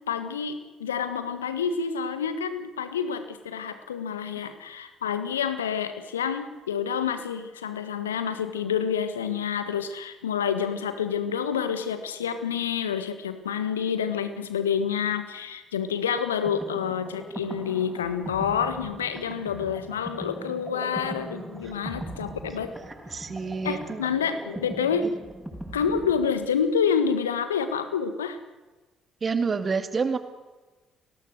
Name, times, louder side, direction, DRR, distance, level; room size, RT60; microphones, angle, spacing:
voice 1, 0.0-22.7 23.6-25.1 25.7-28.4, left 7 dB, 80° left, 10 dB, 1.6 m, -28 dB
sound 1, 16.2-26.7, equal, 5° right, 6.6 m, -40 dB
voice 2, 22.7-24.1 25.0-25.1 29.2-30.2, right 5 dB, 35° right, 9 dB, 2.1 m, -29 dB
29.5 x 20.0 x 6.6 m, 1.2 s
figure-of-eight pair, 45°, 0 cm